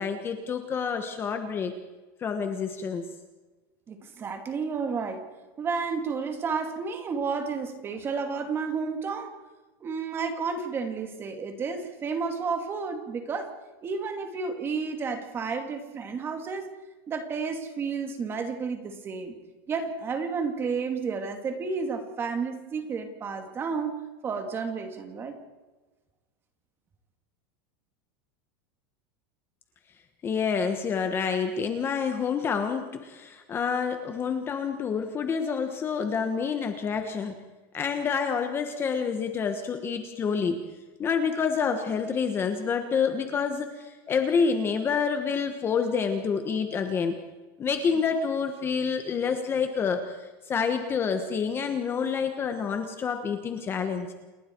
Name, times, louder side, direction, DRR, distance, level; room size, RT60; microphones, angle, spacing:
voice 1, 0.0-1.7 2.2-3.0 30.2-37.4 37.7-40.6 41.0-47.1 47.6-50.0 50.5-54.1, left 6 dB, 20° left, 6 dB, 1.3 m, -28 dB
voice 2, 3.9-5.2 5.6-9.4 9.8-13.5 13.8-16.7 17.1-19.3 19.7-24.0 24.2-25.4, right 5 dB, 20° right, 6 dB, 2.4 m, -31 dB
29.0 x 20.0 x 4.6 m, 1.2 s
supercardioid pair, 165°, 12 cm